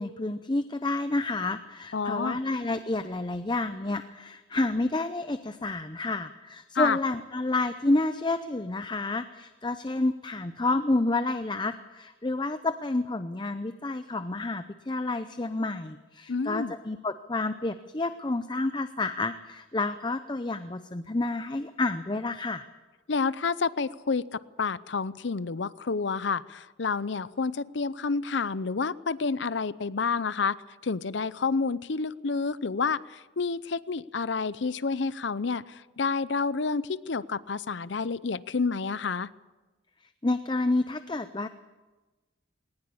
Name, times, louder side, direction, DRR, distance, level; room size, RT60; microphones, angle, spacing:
voice 1, 0.0-22.6 40.2-41.5, left 2 dB, 25° left, 10 dB, 0.6 m, -29 dB
voice 2, 1.9-2.4 6.7-7.0 16.3-16.7 23.1-30.6 30.8-39.3, left 4 dB, 65° left, 17 dB, 0.6 m, -29 dB
19.5 x 19.5 x 8.5 m, 1.2 s
head